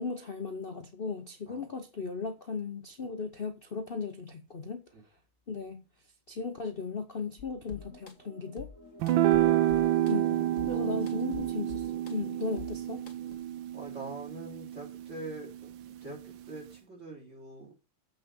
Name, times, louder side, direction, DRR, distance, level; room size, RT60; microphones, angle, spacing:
voice 1, 0.0-4.8 5.5-5.8 6.3-8.7 10.1-13.0, left 4 dB, 55° left, 0.6 m, -37 dB
sound 1, 7.4-13.3, left 6 dB, 40° left, 1.8 m, -48 dB
sound 2, 9.0-15.6, right 13 dB, 70° right, 1.2 m, -29 dB
voice 2, 13.7-15.7 16.0-17.8, right 2 dB, 30° right, 4.2 m, -44 dB
7.8 x 5.9 x 7.0 m
omnidirectional pair, 2.4 m